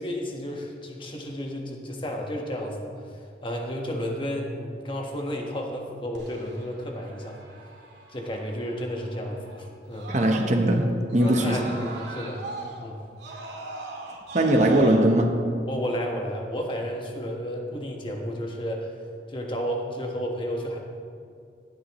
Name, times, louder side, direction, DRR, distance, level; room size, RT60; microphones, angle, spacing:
voice 1, 0.0-7.4 8.1-10.1 11.2-12.4 12.8-13.0 15.7-18.9 19.3-20.8, equal, 30° left, 1 dB, 1.4 m, -32 dB
Screaming, 6.1-10.8 11.1-14.9, right 3 dB, 80° right, 2.2 m, -41 dB
voice 2, 10.1-10.9 11.1-11.6 14.3-15.3, right 1 dB, 40° right, 3 dB, 1.0 m, -20 dB
17.5 x 11.5 x 3.1 m, 2.4 s
head